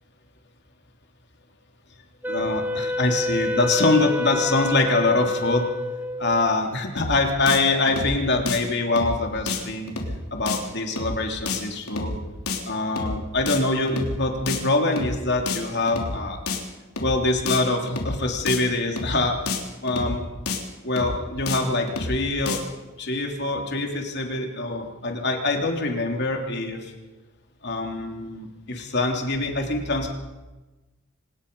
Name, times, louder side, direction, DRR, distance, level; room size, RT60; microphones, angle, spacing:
Wind instrument woodwind instrument, 2.2-6.6, left 1 dB, 10° right, 0.9 m, -28 dB
voice 1, 2.3-5.7 6.2-9.9 10.3-12.1 12.7-16.4 17.0-19.4 19.8-20.2 20.8-22.6 23.0-26.9 27.6-30.1, left 2 dB, 50° left, 2 dB, 3.2 m, -24 dB
sound 1, 7.0-7.2 7.5-7.6 7.9-8.2 8.5-8.6 9.0-9.2 9.5-9.6 9.9-10.2 10.5-10.6 11.0-11.2 11.5-11.6 11.9-12.2 12.5-12.6 13.0-13.2 13.5-13.6 13.9-14.2 14.5-14.6 15.0-15.2 15.5-15.6 15.9-16.2 16.5-16.6 17.0-17.2 17.5-17.6 17.9-18.2 18.5-18.6 19.0-19.2 19.5-19.6 19.9-20.2 20.5-20.6 21.0-21.2 21.5-21.6 21.9-22.2 22.5-22.6, left 3 dB, 85° left, 3.6 m, -29 dB
25.0 x 20.0 x 5.5 m, 1.1 s
head